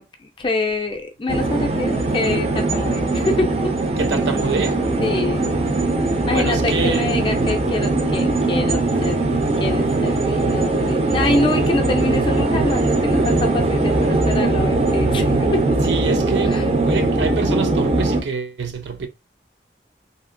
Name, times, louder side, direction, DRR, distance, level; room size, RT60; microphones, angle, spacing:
voice 1, 0.0-3.7 5.0-5.6 6.2-9.2 9.6-15.6 16.5-16.7, left 2 dB, 30° left, 0.4 m, -25 dB
sound 1, 1.3-18.2, right 2 dB, 35° right, 0.4 m, -20 dB
voice 2, 4.0-4.8 6.2-7.1 15.8-19.1, right 4 dB, 85° right, 0.5 m, -26 dB
2.8 x 2.7 x 2.5 m
head